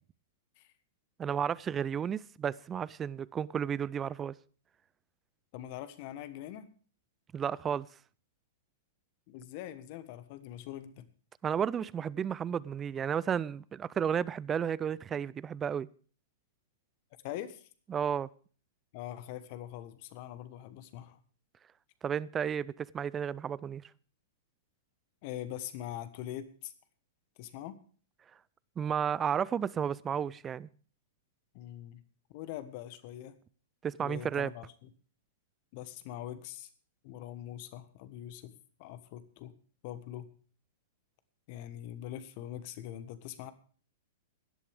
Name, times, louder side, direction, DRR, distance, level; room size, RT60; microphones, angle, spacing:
voice 1, 1.2-4.3 7.3-7.9 11.4-15.9 17.9-18.3 22.0-23.8 28.8-30.7 33.8-34.5, right 8 dB, 20° right, 0.5 m, -32 dB
voice 2, 5.5-6.7 9.3-11.1 17.2-17.7 18.9-21.2 25.2-26.7 27.4-27.8 31.5-32.0 32.3-33.4 34.0-34.9 35.7-36.7 37.0-38.5 38.8-39.5 39.8-40.3 41.5-43.5, left 12 dB, 50° left, 1.4 m, -43 dB
17.0 x 11.5 x 3.5 m
figure-of-eight pair, 105°, 0 cm